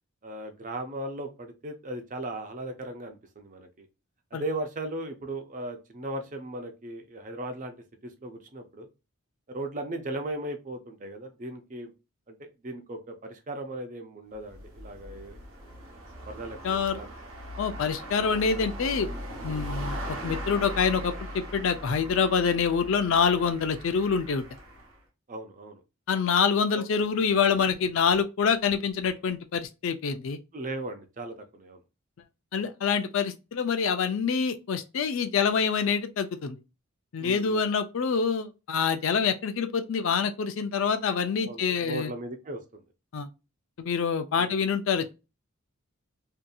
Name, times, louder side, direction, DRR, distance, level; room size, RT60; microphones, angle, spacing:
voice 1, 0.2-3.9 4.3-7.7 8.0-8.9 9.5-11.9 12.3-15.3 16.3-17.1 25.3-25.8 26.7-26.8 30.5-31.8 37.2-37.6 41.4-42.6 44.4-44.6, right 1 dB, 35° right, 0.5 m, -37 dB
sound 1, 14.3-25.0, equal, 65° right, 0.9 m, -39 dB
voice 2, 16.6-17.0 17.6-19.1 19.4-24.4 26.1-30.4 32.5-36.6 37.1-42.1 43.1-43.3 43.8-45.0, left 6 dB, 60° left, 0.4 m, -26 dB
2.7 x 2.6 x 2.2 m
head